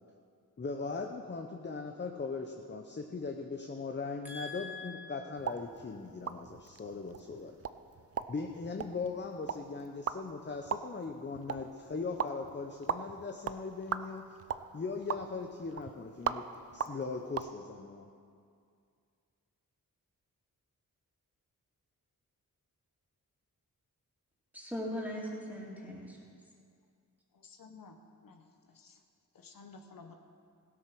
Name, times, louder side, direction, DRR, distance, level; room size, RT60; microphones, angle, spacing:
voice 1, 0.6-7.6 8.3-14.2 14.7-16.4 16.7-18.1, left 4 dB, 30° left, 4 dB, 0.8 m, -39 dB
voice 2, 4.2-5.1 24.5-26.2, left 1 dB, 5° right, -4 dB, 2.9 m, -40 dB
sound 1, 5.4-17.5, right 7 dB, 45° right, 0.5 m, -40 dB
voice 3, 27.3-29.0 29.3-30.1, left 4 dB, 70° left, 4 dB, 1.1 m, -54 dB
16.0 x 8.6 x 6.1 m, 2.3 s
wide cardioid pair, 95°, 35 cm